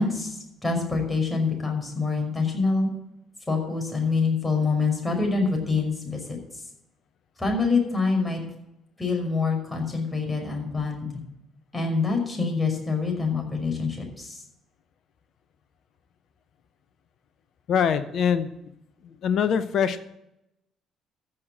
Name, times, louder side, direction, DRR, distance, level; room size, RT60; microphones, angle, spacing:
voice 1, 0.0-2.9 3.5-6.4 7.4-8.4 9.0-11.2 11.7-14.4, left 4 dB, 15° left, 2 dB, 5.6 m, -26 dB
voice 2, 17.7-18.5 19.0-20.0, left 7 dB, 55° left, 13 dB, 0.8 m, -23 dB
14.5 x 6.6 x 7.6 m, 0.84 s
figure-of-eight pair, 50°, 0 cm